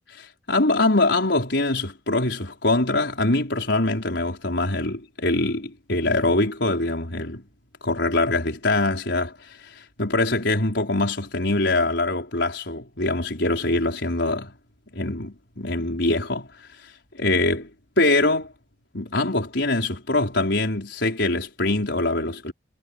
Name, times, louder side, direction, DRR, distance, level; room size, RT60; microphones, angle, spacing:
voice 1, 0.1-7.4 7.8-14.5 14.9-16.5 16.8-17.6 18.0-18.5 18.9-22.5, left 2 dB, 65° left, 5.2 m, -23 dB
head